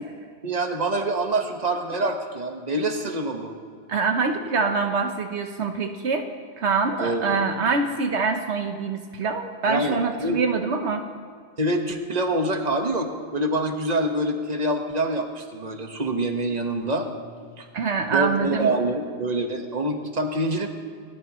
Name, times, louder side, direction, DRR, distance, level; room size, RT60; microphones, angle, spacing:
voice 1, 0.4-3.5 7.0-7.5 9.7-10.4 11.6-17.1 17.6-17.7 18.1-20.7, right 1 dB, 35° right, 4 dB, 1.4 m, -26 dB
voice 2, 3.9-6.3 6.6-11.0 17.7-18.7, right 4 dB, 75° right, 5 dB, 1.2 m, -25 dB
28.5 x 13.5 x 3.1 m, 2.1 s
omnidirectional pair, 1.2 m